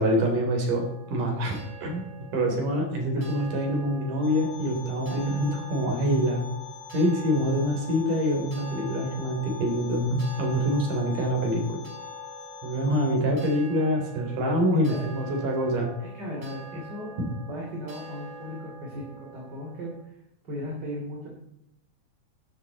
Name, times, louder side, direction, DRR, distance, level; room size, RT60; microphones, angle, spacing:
voice 1, 0.0-2.0 2.3-6.4 6.9-11.8 12.6-15.9 17.2-17.3, equal, 80° right, 1 dB, 5.0 m, -25 dB
sound 1, 0.6-20.0, right 4 dB, 50° right, 6.6 m, -46 dB
sound 2, 4.2-13.2, left 9 dB, 75° left, 3.9 m, -43 dB
voice 2, 5.1-5.4 14.9-15.0 16.0-20.2 20.4-21.3, equal, 35° right, -2 dB, 3.5 m, -37 dB
14.0 x 13.0 x 4.1 m, 0.80 s
omnidirectional pair, 3.6 m